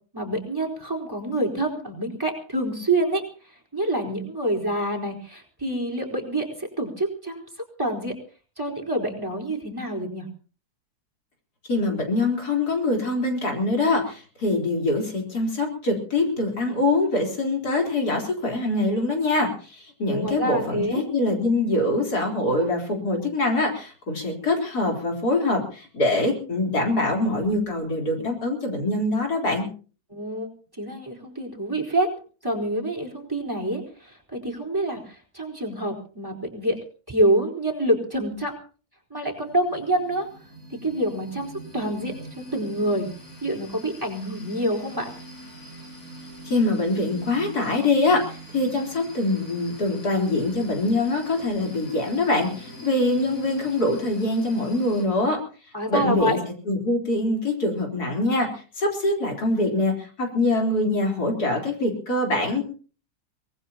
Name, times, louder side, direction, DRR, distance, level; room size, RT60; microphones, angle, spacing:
voice 1, 0.1-3.2 3.7-7.5 7.8-8.2 8.6-10.3 20.1-21.0 30.1-30.5 30.8-32.1 32.4-36.8 37.1-38.6 39.1-40.3 40.7-43.1 43.4-45.1 55.7-56.4, right 1 dB, 15° right, 3 dB, 4.5 m, -27 dB
voice 2, 11.7-29.7 46.4-55.4 55.9-56.4 56.7-58.5 58.8-62.6, left 2 dB, 85° left, 1 dB, 4.5 m, -24 dB
sound 1, 39.2-55.0, equal, 60° left, 8.4 m, -43 dB
24.5 x 19.5 x 2.9 m, 0.39 s
omnidirectional pair, 1.6 m